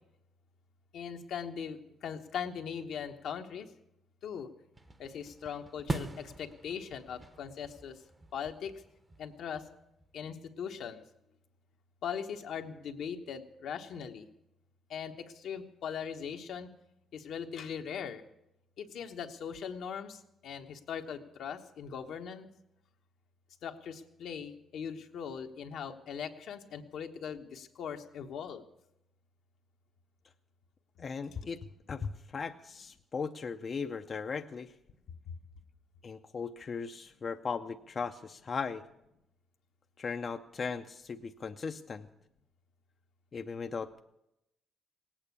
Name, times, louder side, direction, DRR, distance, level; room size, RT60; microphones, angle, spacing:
voice 1, 0.9-3.7 4.2-4.5 5.0-8.0 8.3-8.7 9.2-9.6 10.1-11.0 12.0-14.3 14.9-16.7 17.1-18.2 18.8-22.5 23.6-28.6, left 7 dB, 75° left, 5 dB, 1.1 m, -40 dB
sound 1, 4.8-10.1, right 2 dB, 25° right, 0.9 m, -43 dB
voice 2, 31.0-31.6 31.9-34.7 36.0-38.8 40.0-42.1 43.3-44.0, left 5 dB, 45° left, 6 dB, 0.6 m, -37 dB
18.0 x 8.9 x 8.4 m, 0.86 s
cardioid pair, 90°, 0 cm